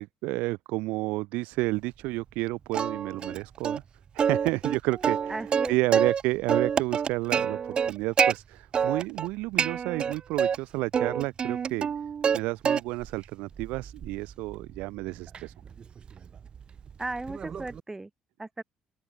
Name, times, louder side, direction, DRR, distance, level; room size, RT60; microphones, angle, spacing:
voice 1, 0.0-3.8 4.1-5.4 5.7-11.9 12.3-15.5, right 21 dB, 85° right, 2.2 m, -31 dB
Plucked string instrument, 2.7-3.4 3.6-3.8 4.2-6.2 6.5-8.3 8.7-9.3 9.6-10.6 10.9-12.4 12.6-13.1 13.6-17.8, right 7 dB, 40° right, 0.4 m, -27 dB
voice 2, 5.3-6.0 17.0-18.1 18.4-18.6, right 2 dB, 15° right, 3.2 m, -35 dB
open air
cardioid pair, 90°, 2 cm